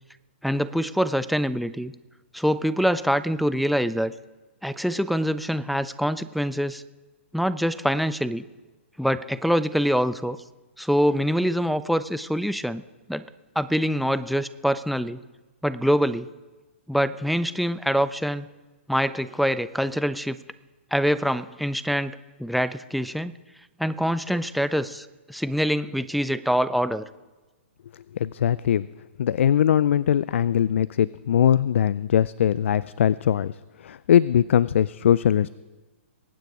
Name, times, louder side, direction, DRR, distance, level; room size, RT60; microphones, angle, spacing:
voice 1, 0.4-1.9 2.3-4.1 4.6-6.8 7.3-8.4 9.0-10.4 10.8-12.8 13.1-13.3 13.6-15.2 15.6-16.3 16.9-18.5 18.9-20.4 20.9-23.3 23.8-27.1, equal, ahead, 13 dB, 0.4 m, -25 dB
voice 2, 28.2-28.9 29.2-33.5 33.8-35.5, left 9 dB, 70° left, 19 dB, 0.3 m, -21 dB
22.5 x 9.2 x 4.8 m, 1.2 s
hypercardioid pair, 140°, 7 cm